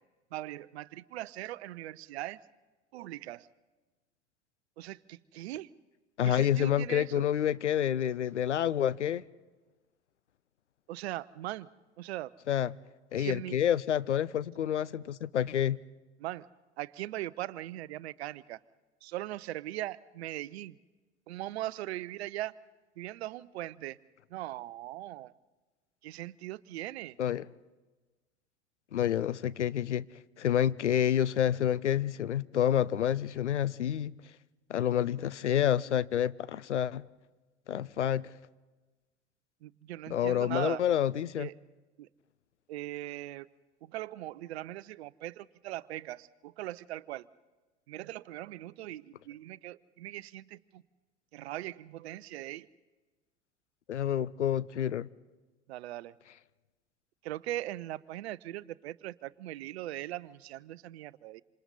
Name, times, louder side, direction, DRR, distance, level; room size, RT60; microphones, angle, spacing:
voice 1, 0.3-2.4 2.9-3.5 4.8-5.7 6.2-7.3 10.9-11.7 12.0-12.3 13.2-13.6 16.2-16.5 16.8-18.6 19.0-20.7 21.3-22.5 23.0-24.0 24.3-25.3 26.0-27.2 39.6-40.8 41.4-41.5 42.0-42.1 42.7-43.5 43.8-47.3 47.9-50.8 51.3-52.7 55.7-56.1 57.2-61.4, right 15 dB, 65° right, 0.7 m, -40 dB
voice 2, 6.2-9.2 12.5-12.7 13.1-15.8 27.2-27.5 28.9-30.1 30.4-34.2 34.7-37.0 37.7-38.3 40.1-41.5 53.9-55.1, left 10 dB, 85° left, 0.6 m, -28 dB
28.0 x 26.5 x 4.2 m
figure-of-eight pair, 80°, 34 cm